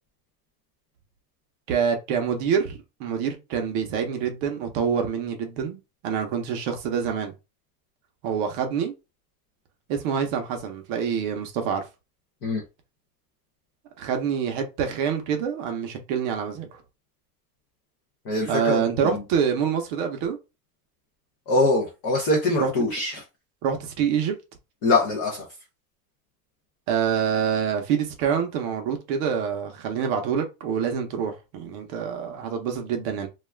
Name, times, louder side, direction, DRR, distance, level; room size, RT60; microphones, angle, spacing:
voice 1, 1.7-7.3 8.2-8.9 9.9-11.8 14.0-16.7 18.5-20.4 22.6-22.7 23.6-24.3 26.9-33.3, right 7 dB, 40° right, 0.6 m, -26 dB
voice 2, 18.3-19.2 21.5-23.2 24.8-25.4, left 2 dB, 25° left, 0.4 m, -23 dB
2.3 x 2.3 x 3.1 m
supercardioid pair, 155°, 46 cm